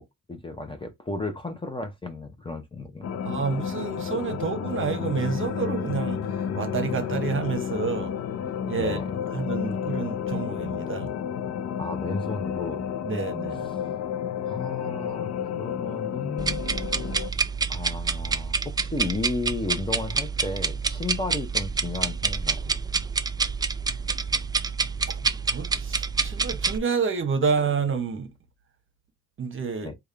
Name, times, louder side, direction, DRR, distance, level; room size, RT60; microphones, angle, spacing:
voice 1, 0.0-3.2 8.8-9.1 11.8-12.9 13.6-13.8 14.4-15.3 15.6-16.9 17.7-22.7 29.8-29.9, left 3 dB, 15° left, 0.8 m, -34 dB
sound 1, 3.0-17.3, left 8 dB, 55° left, 0.5 m, -31 dB
voice 2, 3.2-6.2 6.5-8.1 8.7-9.0 9.3-11.1 13.0-13.7 25.1-25.2 25.5-28.3 29.4-29.9, right 5 dB, 40° right, 0.9 m, -29 dB
sound 2, 16.4-26.8, right 4 dB, 15° right, 0.3 m, -27 dB
3.6 x 2.3 x 3.2 m
cardioid pair, 90°, 30 cm